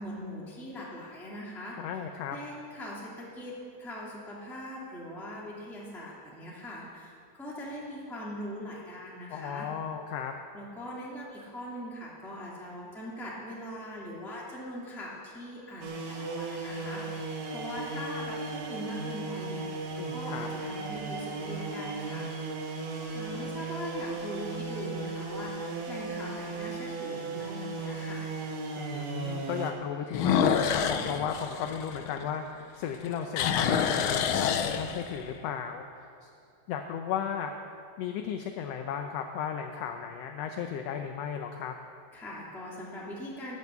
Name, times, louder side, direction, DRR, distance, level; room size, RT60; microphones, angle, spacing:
voice 1, 0.0-1.8 2.3-7.1 7.4-9.7 10.5-22.3 23.1-28.3 42.1-43.6, equal, ahead, -5 dB, 2.0 m, -41 dB
voice 2, 1.8-2.4 9.3-10.3 20.0-20.5 28.8-36.3 36.7-37.5 38.0-41.7, left 8 dB, 70° left, 5 dB, 1.7 m, -35 dB
sound 1, 15.8-29.7, right 3 dB, 65° right, 2.5 m, -36 dB
sound 2, 16.4-17.1 17.8-17.9 23.1-23.6 24.0-24.1 24.7-24.8 25.0-25.1 26.7-26.8 30.1-32.6 32.9-35.3, left 7 dB, 90° left, 1.1 m, -28 dB
12.0 x 11.0 x 8.2 m, 2.5 s
omnidirectional pair, 3.3 m